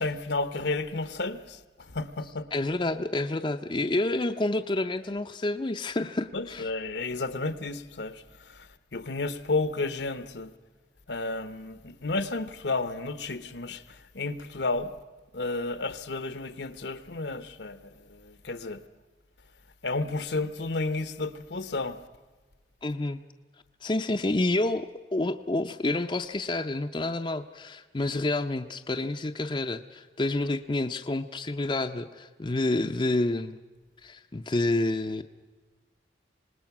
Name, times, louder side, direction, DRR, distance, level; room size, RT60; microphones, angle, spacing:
voice 1, 0.0-2.5 6.3-10.5 11.1-14.9 15.3-18.8 19.8-22.0, left 3 dB, 70° left, 1.0 m, -32 dB
voice 2, 2.5-6.7 22.8-23.2 23.8-33.6 34.0-35.2, left 2 dB, 25° left, 0.6 m, -29 dB
26.0 x 19.5 x 6.0 m
head